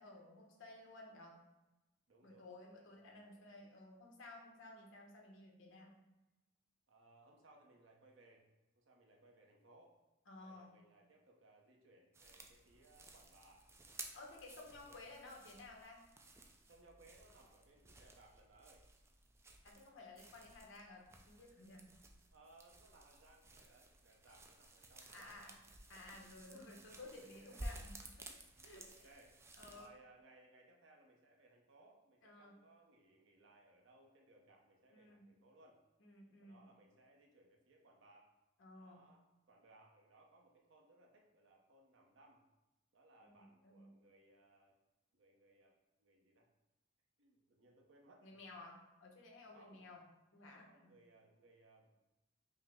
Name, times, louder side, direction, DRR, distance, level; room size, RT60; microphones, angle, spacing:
voice 1, 0.0-1.4 2.2-5.9 10.3-10.7 14.1-16.0 19.6-21.9 25.1-25.5 25.9-28.3 28.6-29.1 29.6-29.9 32.2-32.5 34.9-35.2 36.0-36.6 38.6-39.0 43.2-43.9 48.2-50.0 50.3-50.9, left 2 dB, 80° left, -1 dB, 0.9 m, -55 dB
voice 2, 2.1-3.6 6.9-8.5 8.7-10.0 10.3-13.6 14.7-15.0 15.3-15.4 16.7-18.8 22.3-25.6 27.2-27.9 28.6-29.4 29.7-35.8 36.4-38.3 38.7-42.4 42.9-44.8 45.1-46.5 47.2-48.4 49.5-49.8 50.5-51.9, right 2 dB, 75° right, 0 dB, 0.7 m, -66 dB
sound 1, 12.1-29.9, right 1 dB, 15° right, 0.3 m, -55 dB
5.4 x 2.0 x 3.5 m, 1.0 s
head